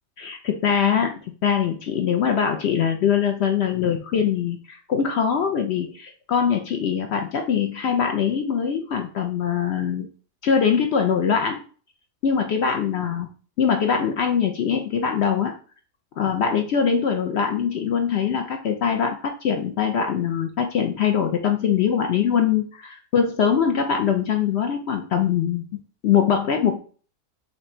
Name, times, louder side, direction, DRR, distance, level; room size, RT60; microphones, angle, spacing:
voice 1, 0.2-1.1 1.4-10.1 10.4-11.6 12.2-13.3 13.6-15.5 16.2-26.8, left 7 dB, 65° left, 5 dB, 0.6 m, -22 dB
4.4 x 2.6 x 4.3 m, 0.40 s
omnidirectional pair, 1.6 m